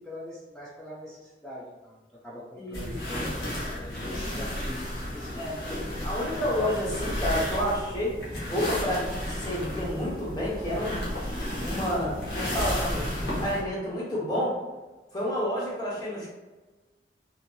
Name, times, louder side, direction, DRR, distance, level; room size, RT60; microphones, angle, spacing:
voice 1, 0.0-2.0 2.2-5.4, left 1 dB, 5° left, -8 dB, 0.4 m, -43 dB
voice 2, 2.6-3.3 5.4-5.5 6.0-8.2 8.5-11.0 11.6-14.6 15.1-16.3, equal, 25° left, -6 dB, 0.8 m, -30 dB
sound 1, 2.7-13.6, left 1 dB, 65° left, 0.9 m, -33 dB
2.7 x 2.6 x 2.2 m, 1.2 s
head